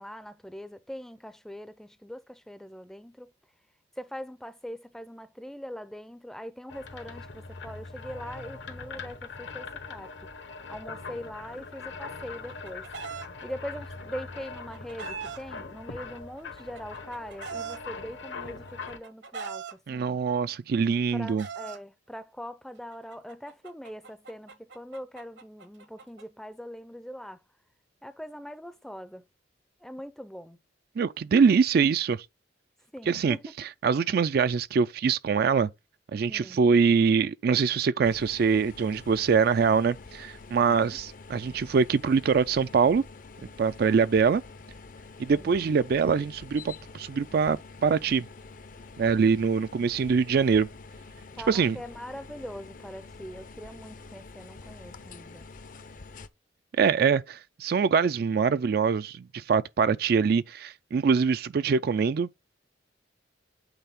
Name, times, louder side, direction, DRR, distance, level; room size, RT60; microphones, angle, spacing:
voice 1, 0.0-3.3 4.0-10.3 10.7-12.9 13.4-20.2 21.1-27.4 28.0-29.2 29.8-30.6 32.9-33.5 36.3-36.6 40.7-41.0 45.4-45.6 51.4-55.5, equal, 5° left, 0.5 m, -42 dB
sound 1, 6.7-19.0, left 4 dB, 75° left, 1.3 m, -42 dB
Chicken rooster, 12.1-13.3 14.3-15.4 16.4-17.8 18.7-19.7 20.7-21.8 22.9-26.2, right 5 dB, 70° right, 1.1 m, -40 dB
voice 2, 19.9-21.5 31.0-32.2 33.1-33.4 33.8-35.7 36.1-43.0 43.6-44.4 45.2-48.3 49.0-50.7 51.5-51.8 56.8-62.3, right 5 dB, 55° right, 0.3 m, -24 dB
sound 2, 38.0-56.3, left 3 dB, 45° left, 0.6 m, -47 dB
8.1 x 4.1 x 3.6 m
head